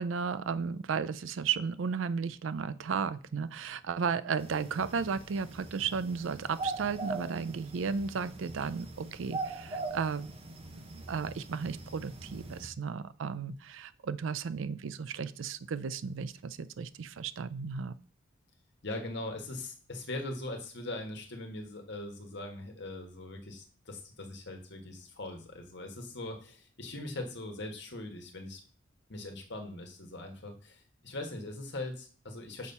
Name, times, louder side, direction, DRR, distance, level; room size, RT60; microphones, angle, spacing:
voice 1, 0.0-10.3 10.7-18.0, right 6 dB, 70° right, 15 dB, 0.4 m, -34 dB
sound 1, 4.4-12.7, right 3 dB, 30° right, 1.0 m, -41 dB
voice 2, 18.8-28.6 29.1-32.7, left 2 dB, 60° left, 4 dB, 1.5 m, -41 dB
6.4 x 4.2 x 5.4 m, 0.41 s
head